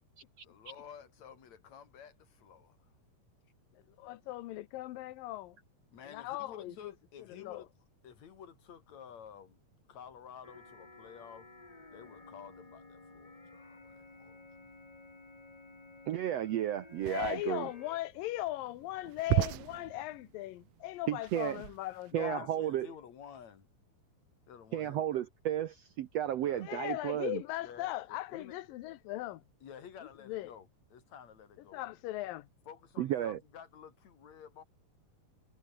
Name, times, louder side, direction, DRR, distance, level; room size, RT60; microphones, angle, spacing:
voice 1, 0.4-2.9 5.9-7.7 8.0-9.6 9.9-11.5 11.9-14.5 22.1-23.7 24.5-25.2 26.3-26.7 27.6-28.6 29.6-31.8 32.7-34.6, left 8 dB, 55° left, 3.3 m, -52 dB
voice 2, 4.0-5.6 6.1-6.9 7.3-7.7 17.0-22.5 26.6-29.4 30.3-30.5 31.7-32.5, left 16 dB, 90° left, 2.6 m, -38 dB
sound 1, 10.4-18.0, left 2 dB, 15° left, 1.2 m, -54 dB
voice 3, 16.1-17.7 21.1-21.6 22.1-22.9 24.7-27.4 33.0-33.4, right 11 dB, 70° right, 1.6 m, -33 dB
sound 2, 16.9-22.1, right 20 dB, 90° right, 2.3 m, -36 dB
omnidirectional pair, 3.9 m